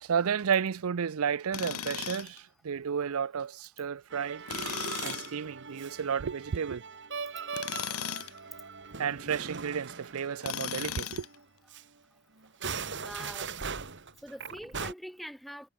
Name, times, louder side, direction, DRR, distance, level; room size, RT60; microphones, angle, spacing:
voice 1, 0.0-4.4 5.0-6.8 8.9-11.2, right 7 dB, 75° right, 0.5 m, -32 dB
Tools, 1.5-2.4 4.5-5.3 7.5-8.4 10.4-11.3, left 9 dB, 80° left, 1.5 m, -36 dB
Musical instrument, 4.1-11.0 11.2-11.4 11.7-11.8 12.4-14.9, right 5 dB, 55° right, 2.2 m, -40 dB
voice 2, 13.0-13.6 14.2-15.7, equal, ahead, 3.1 m, -43 dB
head